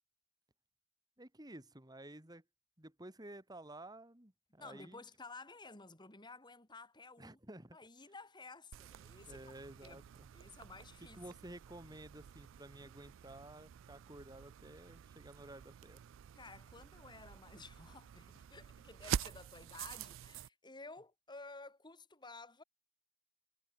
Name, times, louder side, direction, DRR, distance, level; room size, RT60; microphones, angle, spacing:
voice 1, 1.2-2.4 2.8-5.0 7.2-7.8 9.3-10.3 11.1-16.0, right 1 dB, 20° right, 3.1 m, -53 dB
voice 2, 4.6-7.4 7.7-9.4 9.8-10.0 10.3-11.2 16.4-22.6, left 3 dB, 25° left, 3.6 m, -53 dB
sound 1, 8.7-20.5, right 9 dB, 85° right, 0.3 m, -47 dB
head